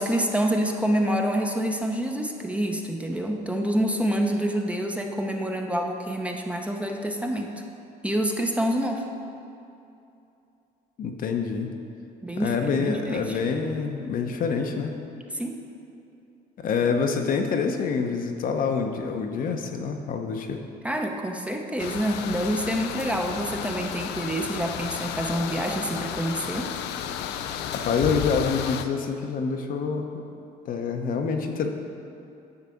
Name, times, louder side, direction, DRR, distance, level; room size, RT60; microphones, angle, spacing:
voice 1, 0.0-7.5 8.0-9.0 12.2-13.4 15.3-15.6 20.8-26.7, right 1 dB, 5° right, 2 dB, 0.7 m, -27 dB
voice 2, 11.0-11.7 12.4-14.9 16.6-20.6 27.8-30.2 30.6-31.7, left 5 dB, 55° left, 4 dB, 0.8 m, -26 dB
sound 1, 21.8-28.8, left 9 dB, 85° left, 0.5 m, -33 dB
9.7 x 4.0 x 7.0 m, 2.7 s
cardioid pair, 110°, 17 cm